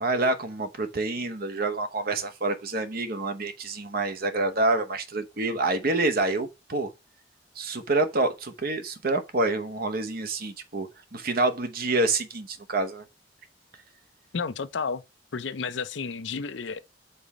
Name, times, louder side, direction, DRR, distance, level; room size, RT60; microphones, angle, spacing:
voice 1, 0.0-6.9 7.6-13.0, right 2 dB, 55° right, 1.0 m, -27 dB
voice 2, 14.3-15.0 15.3-16.8, left 5 dB, 75° left, 0.6 m, -31 dB
5.4 x 4.2 x 5.0 m
head